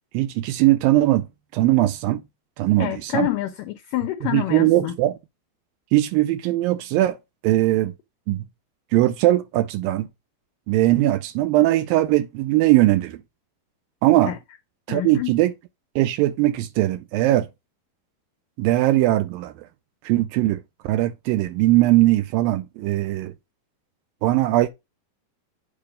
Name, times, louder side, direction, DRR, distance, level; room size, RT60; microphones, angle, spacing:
voice 1, 0.1-1.2 1.5-2.2 2.6-3.3 4.3-5.1 5.9-7.2 7.4-7.9 8.3-8.4 8.9-10.1 10.7-13.2 14.0-14.3 14.9-15.5 16.0-17.5 18.6-19.7 20.0-23.3 24.2-24.7, right 16 dB, 80° right, 2.1 m, -20 dB
voice 2, 2.8-4.9 14.2-14.4 14.9-15.3, left 14 dB, 85° left, 1.8 m, -27 dB
8.7 x 3.0 x 5.0 m
omnidirectional pair, 4.4 m